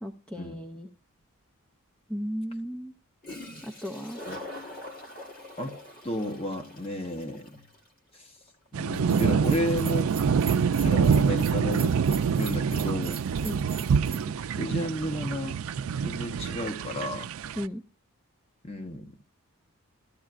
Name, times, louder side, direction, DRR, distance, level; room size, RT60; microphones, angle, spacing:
voice 1, 0.0-0.9 2.1-2.9 3.6-4.2 13.4-13.6 17.6-17.8, equal, 5° left, 0.4 m, -35 dB
Toilet flush, 1.2-1.3 3.0-3.1 3.2-12.6, left 1 dB, 40° left, 1.3 m, -46 dB
voice 2, 6.0-7.7 8.7-10.1 10.7-12.1 12.4-13.2 14.1-14.2 14.5-15.6 16.0-17.3 18.6-19.2, left 1 dB, 25° left, 0.9 m, -32 dB
sound 1, 8.7-17.7, right 6 dB, 75° right, 0.4 m, -26 dB
Bell, 8.9-14.2, right 10 dB, 25° right, 0.8 m, -43 dB
13.5 x 11.5 x 2.4 m
head